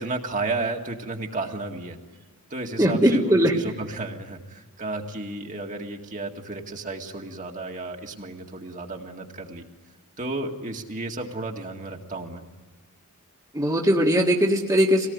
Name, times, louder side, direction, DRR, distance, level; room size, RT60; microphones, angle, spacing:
voice 1, 0.0-2.0 2.5-9.7 10.2-12.4, right 2 dB, 35° right, 2 dB, 2.0 m, -33 dB
voice 2, 2.8-3.5 13.5-15.1, equal, 15° right, -1 dB, 1.8 m, -20 dB
24.5 x 18.5 x 9.5 m, 1.4 s
head